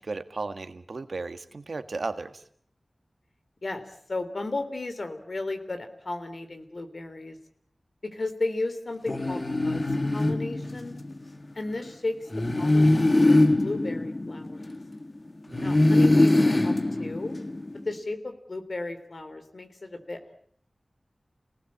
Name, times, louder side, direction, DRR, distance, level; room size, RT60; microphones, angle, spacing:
voice 1, 0.0-2.4 15.5-15.8, right 3 dB, 75° right, 10 dB, 1.6 m, -35 dB
voice 2, 3.6-7.4 8.0-9.8 10.1-11.0 11.5-12.3 12.6-14.6 15.6-16.7 17.0-17.3 17.8-20.3, left 2 dB, 65° left, 8 dB, 3.4 m, -34 dB
sound 1, 9.1-11.2 12.3-15.0 15.5-17.8, left 2 dB, 40° left, 1.6 m, -22 dB
29.0 x 19.0 x 8.6 m, 0.63 s
wide cardioid pair, 60°, 0 cm